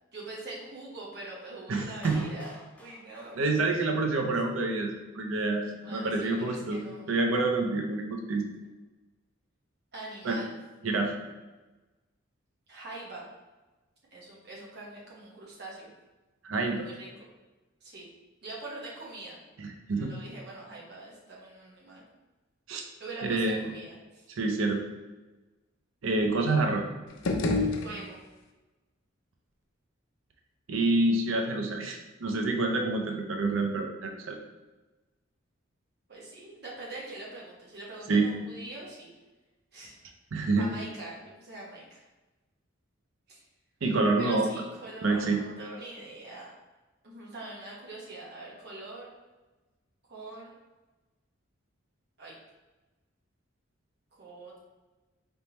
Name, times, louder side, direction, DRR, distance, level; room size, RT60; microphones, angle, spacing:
voice 1, 0.1-2.5 2.8-3.4 4.5-4.6 5.8-7.1 9.9-10.5 12.7-13.2 14.1-15.9 16.6-17.3 17.8-18.1 18.4-19.4 20.0-22.0 23.0-24.2 27.6-28.2 36.1-39.1 39.7-39.9 40.5-42.0 43.3-43.4 44.2-46.5 47.0-49.1 50.1-50.5 52.2-52.3 54.1-54.6, right 2 dB, 55° right, -5 dB, 1.2 m, -43 dB
voice 2, 1.7-2.3 3.4-6.8 7.1-8.5 10.2-10.4 10.8-11.1 16.4-16.9 19.6-20.1 22.7-22.8 23.2-23.6 24.3-24.8 26.0-26.8 30.7-34.4 38.1-38.3 40.3-40.6 43.8-44.5 45.0-45.4, right 3 dB, 90° right, 3 dB, 0.6 m, -27 dB
Clapping, 2.0-4.1, left 1 dB, 5° left, 0.3 m, -49 dB
sound 1, 27.1-28.5, left 2 dB, 75° left, 0.5 m, -29 dB
4.2 x 3.5 x 2.9 m, 1.2 s
head